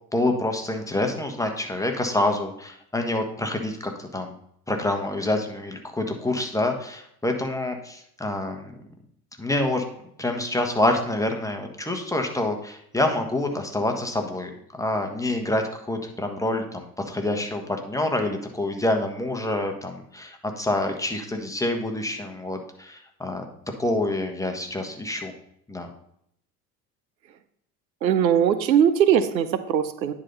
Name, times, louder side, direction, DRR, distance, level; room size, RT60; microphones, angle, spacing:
voice 1, 0.1-4.4 4.7-8.7 9.4-9.8 10.2-14.5 14.8-23.4 23.8-25.3 25.7-25.9, left 1 dB, 5° left, 3 dB, 1.4 m, -27 dB
voice 2, 28.0-30.1, right 9 dB, 90° right, 12 dB, 0.6 m, -20 dB
9.7 x 4.1 x 5.4 m, 0.71 s
hypercardioid pair, 65°, 50 cm